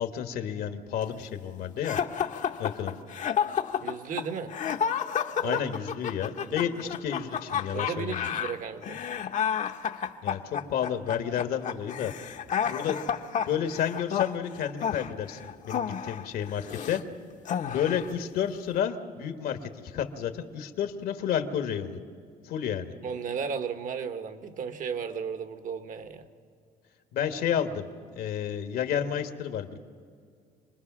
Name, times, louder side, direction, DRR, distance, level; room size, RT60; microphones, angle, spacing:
voice 1, 0.0-2.0 2.6-2.9 5.4-8.3 10.2-12.1 12.7-13.0 13.3-17.0 17.7-22.0 22.4-22.9 27.1-27.9 28.1-29.8, left 9 dB, 75° left, 9 dB, 1.4 m, -31 dB
sound 1, 1.8-17.0 17.4-18.1, left 8 dB, 50° left, 0.9 m, -31 dB
voice 2, 3.8-4.6 5.4-5.6 6.4-6.9 7.7-9.0 12.6-12.7 23.0-26.3, right 6 dB, 55° right, 10 dB, 1.4 m, -35 dB
26.5 x 20.0 x 6.1 m, 2.2 s
cardioid pair, 110°, 16 cm